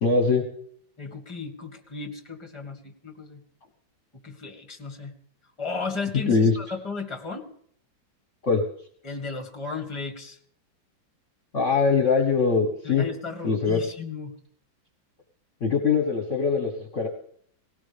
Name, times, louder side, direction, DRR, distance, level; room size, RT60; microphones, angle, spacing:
voice 1, 0.0-0.4 6.3-6.5 8.4-8.6 11.5-13.1 13.4-13.8 15.6-17.1, left 5 dB, 40° left, 1 dB, 1.7 m, -22 dB
voice 2, 1.0-3.4 4.2-5.1 5.6-7.5 9.0-10.4 12.8-14.3, left 4 dB, 15° left, 4 dB, 1.9 m, -35 dB
19.0 x 18.0 x 3.5 m, 0.63 s
omnidirectional pair, 2.1 m